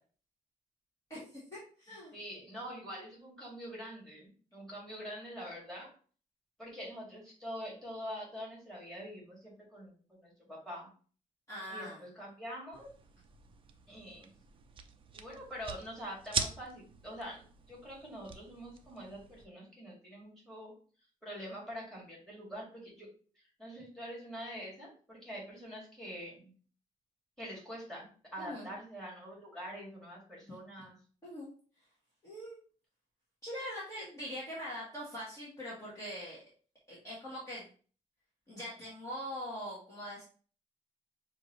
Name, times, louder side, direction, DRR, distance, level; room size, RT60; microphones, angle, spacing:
voice 1, 1.1-2.1 11.5-12.0 28.4-28.7 30.5-30.6 31.2-31.5 32.2-32.6 33.4-36.4 36.9-37.6 38.5-40.2, equal, 25° left, -7 dB, 1.5 m, -42 dB
voice 2, 2.1-5.9 6.6-10.9 11.7-12.9 13.9-14.3 15.1-20.7 21.2-23.1 23.4-26.5 27.4-31.0, equal, 5° left, -5 dB, 2.2 m, -45 dB
sound 1, 12.7-19.4, right 6 dB, 40° right, 0.5 m, -43 dB
5.7 x 2.7 x 3.2 m, 0.40 s
wide cardioid pair, 160°, 14 cm